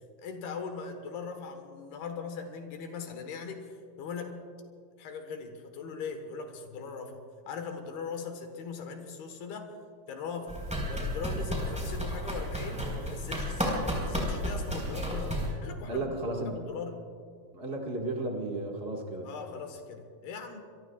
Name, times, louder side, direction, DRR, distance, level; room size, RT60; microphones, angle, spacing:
voice 1, 0.2-4.4 5.0-9.7 10.1-10.6 10.9-16.1 16.4-17.0 19.2-20.6, left 5 dB, 80° left, 5 dB, 3.4 m, -40 dB
sound 1, 10.5-15.5, equal, ahead, 4.2 m, -32 dB
voice 2, 15.8-16.6 17.5-19.3, right 2 dB, 65° right, -1 dB, 0.6 m, -34 dB
25.5 x 23.0 x 2.4 m, 2.2 s
omnidirectional pair, 4.5 m